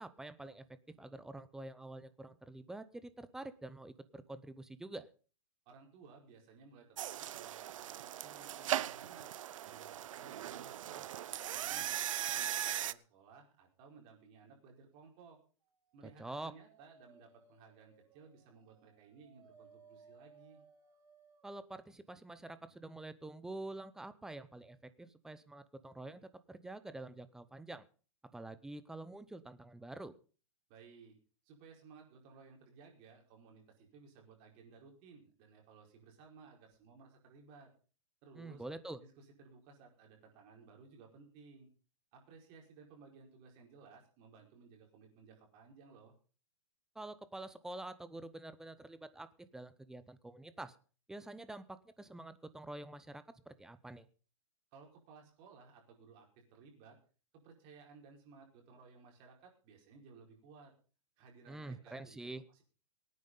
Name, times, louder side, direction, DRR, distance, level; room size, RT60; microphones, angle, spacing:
voice 1, 0.0-5.1 16.0-16.6 21.4-27.9 28.3-30.1 38.3-39.0 46.9-50.8 51.1-54.1 61.5-62.4, right 2 dB, 5° right, 14 dB, 0.6 m, -47 dB
voice 2, 5.6-9.3 9.6-12.0 12.3-15.4 15.9-20.6 30.7-31.1 31.4-37.7 38.2-38.6 39.2-41.7 42.1-46.1 54.7-56.9 57.3-60.7 61.2-62.6, right 5 dB, 30° right, 1 dB, 4.8 m, -59 dB
sound 1, 7.0-12.9, right 11 dB, 70° right, 0.6 m, -39 dB
Dog, 16.0-21.6, right 5 dB, 85° right, 3.4 m, -63 dB
23.5 x 9.4 x 3.9 m, 0.37 s
hypercardioid pair, 160°, 17 cm